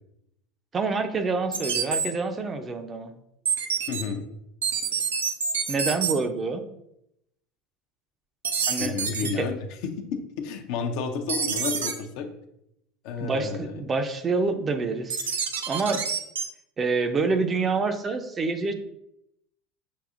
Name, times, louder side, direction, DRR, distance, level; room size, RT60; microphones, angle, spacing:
voice 1, 0.7-3.1 5.7-6.6 8.7-9.5 13.2-15.3 15.7-16.0 16.8-18.7, right 4 dB, 30° right, 7 dB, 0.5 m, -27 dB
sound 1, 1.5-2.1 3.5-4.0 4.6-6.1 8.4-9.3 11.3-11.9 15.1-16.4, right 6 dB, 90° right, 0.5 m, -27 dB
voice 2, 3.9-4.2 8.8-9.6 10.1-12.3 13.0-13.8, left 5 dB, 65° left, 5 dB, 0.5 m, -31 dB
6.4 x 2.7 x 2.5 m, 0.80 s
hypercardioid pair, 85°, 0 cm